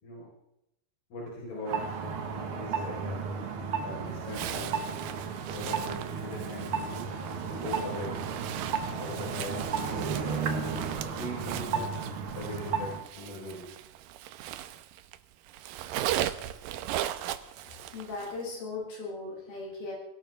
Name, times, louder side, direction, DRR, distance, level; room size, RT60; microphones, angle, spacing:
voice 1, 1.1-3.2 3.8-4.9 5.5-7.1 7.5-8.2 9.0-12.1 12.3-13.7, left 1 dB, 85° left, -4 dB, 6.5 m, -40 dB
sound 1, 1.7-13.0, right 5 dB, 50° right, 1.7 m, -34 dB
Zipper (clothing), 4.3-15.2 15.5-18.4, right 12 dB, 75° right, 2.3 m, -38 dB
voice 2, 17.9-19.9, left 3 dB, 65° left, -3 dB, 8.8 m, -38 dB
23.5 x 17.0 x 3.5 m, 0.85 s
omnidirectional pair, 4.3 m